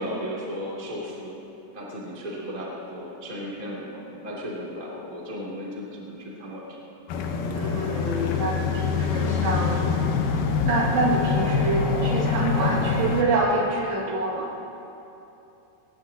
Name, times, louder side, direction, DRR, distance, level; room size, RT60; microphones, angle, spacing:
voice 1, 0.0-1.4 1.7-6.8, equal, 15° right, -5 dB, 1.7 m, -35 dB
sound 1, 7.1-13.2, left 5 dB, 70° left, 2.2 m, -25 dB
voice 2, 7.6-9.8 10.6-14.5, right 3 dB, 90° right, -4 dB, 4.2 m, -26 dB
19.5 x 18.0 x 2.9 m, 2.9 s
omnidirectional pair, 4.9 m